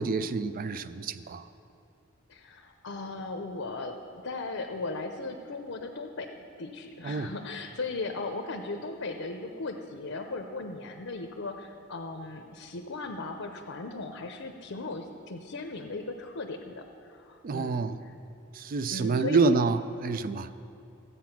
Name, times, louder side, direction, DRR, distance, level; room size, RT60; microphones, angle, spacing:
voice 1, 0.0-1.5 7.0-7.3 17.4-18.0 18.5-20.5, right 4 dB, 45° right, 13 dB, 0.4 m, -27 dB
voice 2, 2.3-17.9 18.9-19.4, left 3 dB, 70° left, 4 dB, 0.7 m, -37 dB
13.5 x 8.3 x 5.9 m, 2.8 s
head